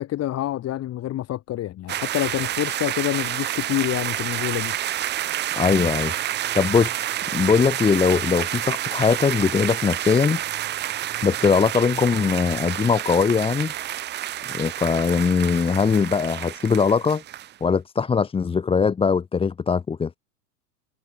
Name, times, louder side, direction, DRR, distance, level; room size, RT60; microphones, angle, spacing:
voice 1, 0.0-4.7, left 13 dB, 30° left, 2.1 m, -27 dB
sound 1, 1.9-17.5, right 12 dB, 25° right, 0.8 m, -29 dB
voice 2, 5.5-6.1 6.5-10.4 11.2-13.7 14.5-17.2 17.6-20.1, left 5 dB, 10° left, 0.9 m, -21 dB
hypercardioid pair, 95°, 46 cm